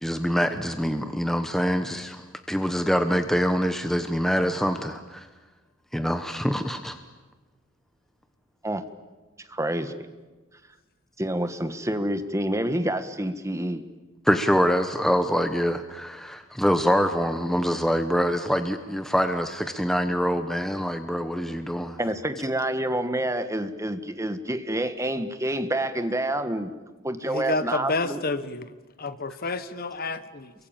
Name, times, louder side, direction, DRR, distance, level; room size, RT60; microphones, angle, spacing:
voice 1, 0.0-5.3 5.9-7.0 14.2-22.0, equal, ahead, 7 dB, 1.0 m, -25 dB
voice 2, 9.5-10.1 11.2-13.8 22.0-26.7 27.0-28.2, right 1 dB, 15° right, 10 dB, 1.4 m, -28 dB
voice 3, 27.2-28.7 29.0-30.5, left 3 dB, 45° left, 13 dB, 1.1 m, -29 dB
28.5 x 23.0 x 8.9 m, 1.2 s
head